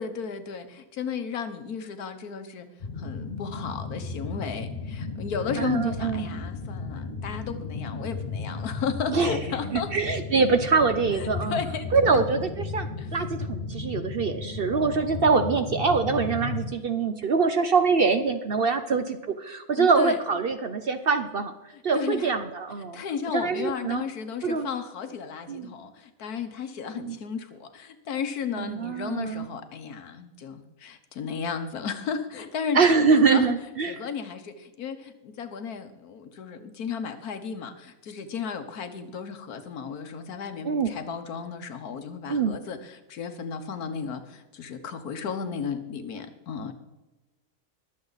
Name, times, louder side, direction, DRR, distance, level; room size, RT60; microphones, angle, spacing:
voice 1, 0.0-2.7 3.0-9.9 11.2-12.2 13.0-13.1 19.8-20.2 21.9-22.3 22.9-33.5 33.9-46.7, left 6 dB, 90° left, 8 dB, 1.6 m, -34 dB
sound 1, 2.8-16.7, left 3 dB, 35° left, 1.5 m, -34 dB
voice 2, 5.6-6.2 9.1-9.4 9.7-11.6 11.9-21.5 21.8-23.0 23.3-24.0 24.4-24.7 25.5-25.7 26.9-27.2 28.5-29.5 32.7-34.0 40.6-40.9 42.3-42.6, right 4 dB, 55° right, 9 dB, 0.7 m, -24 dB
21.5 x 7.6 x 4.0 m, 1.0 s
omnidirectional pair, 1.5 m